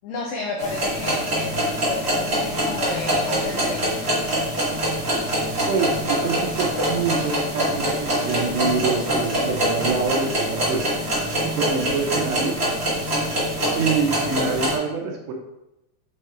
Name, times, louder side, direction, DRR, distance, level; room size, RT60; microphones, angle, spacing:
voice 1, 0.0-4.0, left 3 dB, 85° left, 0 dB, 2.3 m, -31 dB
sound 1, 0.6-14.7, equal, 35° right, 0.9 m, -24 dB
voice 2, 5.7-11.1 11.4-12.7 13.7-15.3, right 5 dB, 75° right, 1 dB, 2.7 m, -26 dB
7.6 x 3.5 x 4.3 m, 0.90 s
omnidirectional pair, 5.7 m